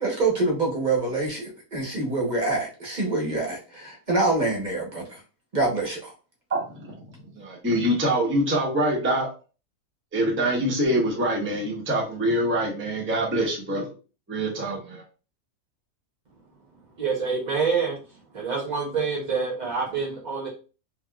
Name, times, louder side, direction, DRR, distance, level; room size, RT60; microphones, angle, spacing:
voice 1, 0.0-5.2 5.5-6.1, right 2 dB, 35° right, -1 dB, 0.9 m, -26 dB
voice 2, 6.5-6.9 7.3-9.3 10.1-13.8 14.3-15.0, right 1 dB, 15° right, -2 dB, 0.5 m, -25 dB
voice 3, 17.0-18.0 18.3-20.5, right 5 dB, 70° right, -2 dB, 0.4 m, -26 dB
3.4 x 2.8 x 2.3 m, 0.34 s
omnidirectional pair, 1.7 m